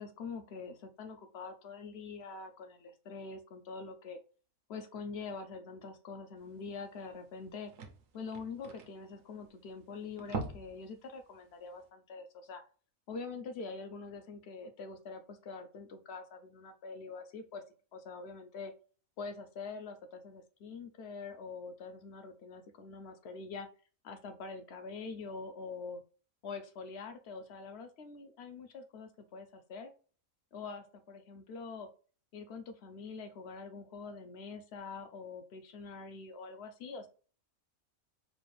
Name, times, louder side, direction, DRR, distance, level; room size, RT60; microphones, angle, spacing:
voice 1, 0.0-4.2 4.7-7.7 8.1-12.6 13.1-17.6 17.9-18.7 19.2-23.7 24.0-26.0 26.4-29.9 30.5-31.9 32.3-37.1, left 4 dB, 60° left, 8 dB, 0.7 m, -45 dB
sound 1, 6.7-6.8 7.1-7.2 7.4-9.7 10.1-10.8 11.2-11.3 11.8-11.9, right 3 dB, 75° right, 1.1 m, -42 dB
4.2 x 2.3 x 3.1 m, 0.38 s
omnidirectional pair, 1.4 m